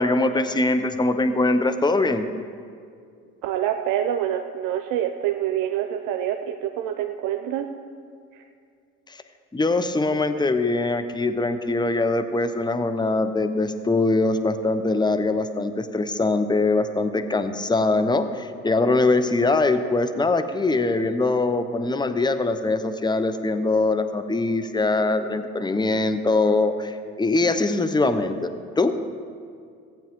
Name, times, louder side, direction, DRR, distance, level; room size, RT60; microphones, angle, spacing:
voice 1, 0.0-2.3 9.5-28.9, left 2 dB, 15° left, 9 dB, 0.8 m, -22 dB
voice 2, 3.4-7.7, right 10 dB, 75° right, 5 dB, 0.7 m, -26 dB
15.0 x 9.0 x 3.6 m, 2.3 s
hypercardioid pair, 60°, 33 cm